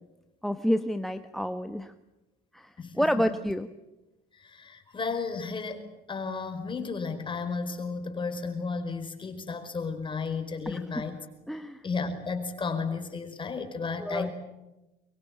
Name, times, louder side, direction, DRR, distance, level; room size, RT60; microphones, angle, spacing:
voice 1, 0.4-1.9 2.5-2.7 2.9-3.7 10.7-10.8 11.5-11.8 14.0-14.3, equal, ahead, 8 dB, 1.1 m, -28 dB
voice 2, 2.8-3.3 4.4-11.2 11.8-14.3, left 4 dB, 30° left, 7 dB, 5.0 m, -33 dB
24.0 x 22.5 x 9.0 m, 1.0 s
cardioid pair, 110°, 17 cm